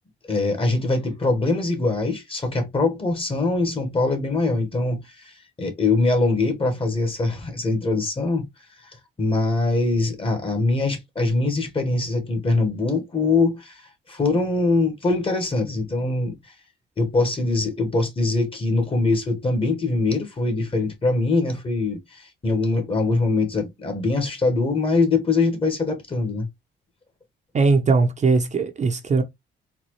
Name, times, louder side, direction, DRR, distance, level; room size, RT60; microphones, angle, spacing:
voice 1, 0.3-8.5 9.2-13.8 14.1-16.4 17.0-26.5, left 3 dB, 30° left, 1.2 m, -23 dB
voice 2, 27.5-29.2, right 4 dB, 35° right, 0.7 m, -19 dB
4.1 x 2.3 x 3.0 m
cardioid pair, 90°, 20 cm